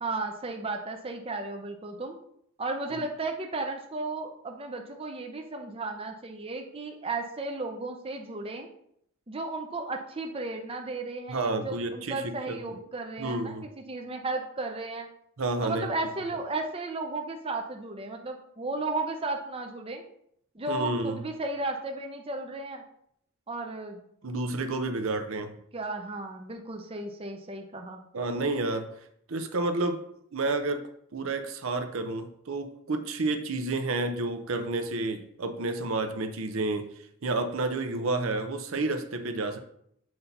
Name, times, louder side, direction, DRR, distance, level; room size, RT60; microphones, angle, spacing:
voice 1, 0.0-2.2 2.6-8.7 9.3-15.1 15.6-20.0 20.5-22.8 23.5-24.0 25.7-28.0, right 2 dB, 25° right, 3 dB, 0.6 m, -34 dB
voice 2, 11.3-12.8 13.2-13.6 15.4-15.9 20.7-21.2 24.2-25.5 28.1-28.9 29.3-30.0 30.3-36.9 37.2-39.6, right 2 dB, 65° right, 7 dB, 0.6 m, -30 dB
7.7 x 2.8 x 5.4 m, 0.70 s
head